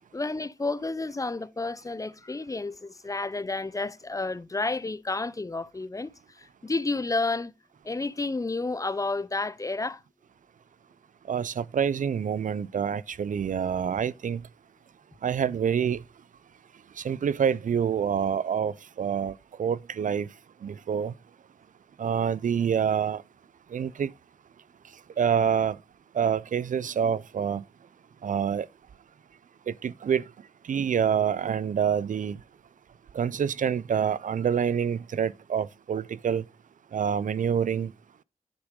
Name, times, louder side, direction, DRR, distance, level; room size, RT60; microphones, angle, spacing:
voice 1, 0.1-7.5 7.8-10.0, left 3 dB, 25° left, 0.4 m, -31 dB
voice 2, 11.3-14.5 15.2-16.0 17.0-20.3 20.6-21.1 22.0-23.2 23.7-24.1 25.2-25.8 26.1-27.6 28.2-28.7 29.7-30.3 30.6-32.4 33.1-36.4 36.9-37.9, right 7 dB, 80° right, 0.4 m, -27 dB
9.9 x 6.0 x 3.6 m
wide cardioid pair, 90°, 13 cm